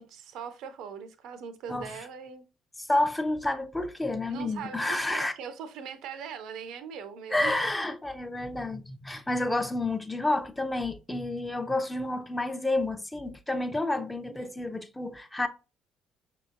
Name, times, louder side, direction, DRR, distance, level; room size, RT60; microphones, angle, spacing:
voice 1, 0.0-2.4 4.3-7.6 9.1-9.2 13.8-14.5, right 7 dB, 60° right, 0.4 m, -41 dB
voice 2, 2.8-5.3 7.3-15.5, left 2 dB, 10° left, 0.5 m, -30 dB
6.0 x 2.8 x 2.4 m
figure-of-eight pair, 50°, 0 cm